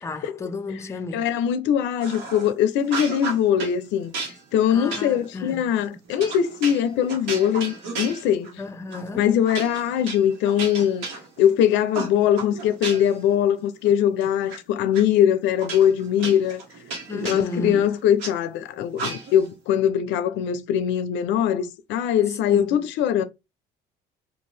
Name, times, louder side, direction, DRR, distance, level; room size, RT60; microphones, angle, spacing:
voice 1, 0.0-1.3 4.7-5.8 8.6-9.3 17.1-17.9 22.4-22.8, left 3 dB, 15° left, 0.4 m, -33 dB
voice 2, 1.1-4.1 4.5-8.5 9.2-11.1 11.4-16.6 17.1-23.2, left 9 dB, 75° left, 0.4 m, -21 dB
sound 1, 2.0-2.5 2.8-3.8 4.1-8.6 8.9-9.1 9.5-11.6 11.9-13.2 13.6-14.6 14.9-15.0 15.6-18.3 18.9-19.5, right 3 dB, 85° right, 1.2 m, -34 dB
2.6 x 2.4 x 3.2 m
supercardioid pair, 80°, 19 cm